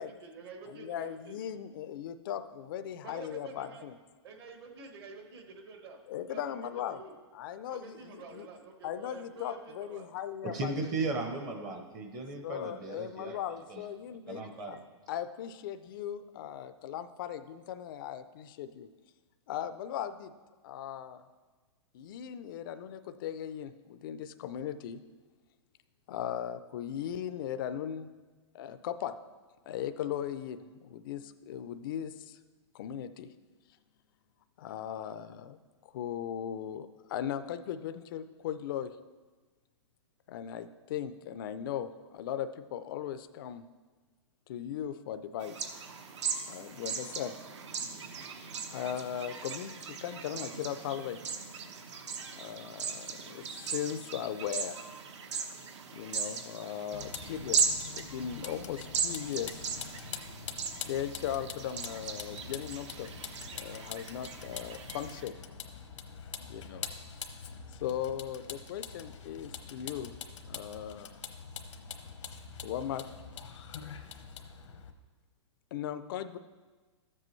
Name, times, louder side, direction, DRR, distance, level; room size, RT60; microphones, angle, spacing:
voice 1, 0.0-1.4 3.0-3.9 4.2-6.0 6.3-6.4 6.8-7.1 7.7-10.1, right 4 dB, 55° right, 4 dB, 1.3 m, -48 dB
voice 2, 0.7-3.9 6.1-7.0 7.3-8.5 8.8-10.7 11.7-11.8 12.4-14.8 15.1-18.9 19.5-20.3 20.6-21.2 21.9-25.0 26.1-28.1 28.5-29.1 29.7-32.4 32.7-33.3 34.6-35.6 35.9-39.0 40.3-43.6 44.5-45.7 46.5-47.4 48.7-51.2 52.3-54.7 55.9-57.6 57.9-59.7 60.9-63.1 63.5-65.4 66.5-66.9 67.8-70.1 70.5-71.2 72.6-73.0 75.7-76.4, left 10 dB, 45° left, 11 dB, 0.4 m, -38 dB
voice 3, 10.4-13.4 13.7-13.8 14.3-14.8, right 3 dB, 25° right, 4 dB, 0.7 m, -36 dB
sound 1, 45.4-65.2, right 6 dB, 70° right, 1.0 m, -38 dB
Vehicle, 56.9-74.9, left 6 dB, 85° left, 0.9 m, -44 dB
13.0 x 7.6 x 3.1 m, 1.3 s
hypercardioid pair, 160°, 15 cm